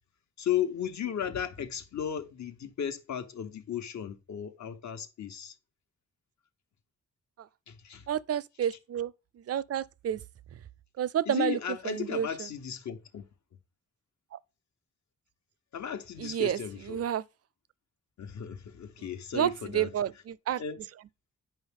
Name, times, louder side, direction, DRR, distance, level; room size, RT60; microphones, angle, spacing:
voice 1, 0.4-5.5 7.7-8.0 11.3-13.2 15.7-17.0 18.2-19.9 20.6-20.8, left 9 dB, 75° left, 1.1 m, -35 dB
voice 2, 8.1-9.1 9.5-10.2 11.0-11.6 11.8-12.5 14.3-14.4 16.2-16.6 16.9-17.2 19.3-20.6, right 10 dB, 55° right, 0.5 m, -30 dB
9.1 x 5.4 x 3.6 m
cardioid pair, 55°, 29 cm